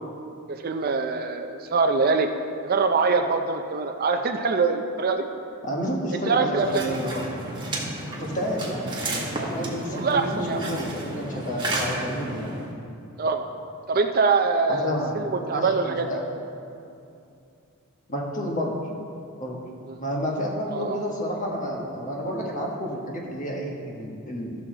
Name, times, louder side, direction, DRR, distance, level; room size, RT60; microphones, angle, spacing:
voice 1, 0.5-2.3 2.6-5.3 6.2-7.0 9.9-10.7 13.2-13.4 13.9-16.1 19.9-20.0 20.7-21.0, right 4 dB, 40° right, 6 dB, 0.4 m, -24 dB
voice 2, 5.6-7.3 8.2-12.5 14.7-16.2 18.1-18.7 19.4-19.6 20.0-24.5, equal, 35° left, -2 dB, 1.4 m, -30 dB
sound 1, 6.6-12.7, right 1 dB, 20° right, 1.3 m, -32 dB
13.5 x 6.3 x 3.8 m, 2.6 s
head